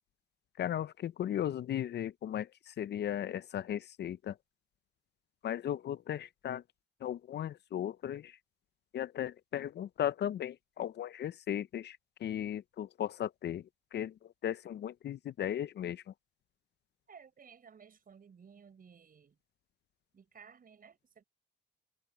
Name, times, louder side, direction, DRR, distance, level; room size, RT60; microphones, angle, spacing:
voice 1, 0.6-4.3 5.4-6.6 7.0-8.4 8.9-13.6 13.9-14.1 14.4-16.0, left 10 dB, 60° left, 0.6 m, -36 dB
voice 2, 17.1-19.4 20.1-21.2, right 6 dB, 45° right, 5.8 m, -56 dB
cardioid pair, 90°, 20 cm